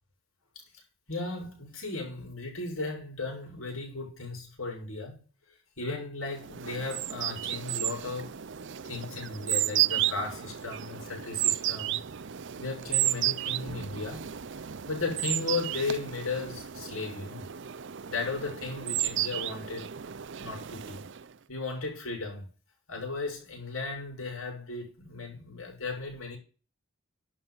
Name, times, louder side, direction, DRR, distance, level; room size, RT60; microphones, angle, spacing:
voice 1, 1.1-5.2 5.8-8.4 8.8-12.0 12.6-14.3 14.9-17.5 18.1-19.9 20.4-21.0 21.5-22.5 22.9-26.4, left 3 dB, 90° left, 6.5 m, -36 dB
sound 1, 6.4-21.3, right 13 dB, 60° right, 0.5 m, -33 dB
11.5 x 6.4 x 5.7 m
head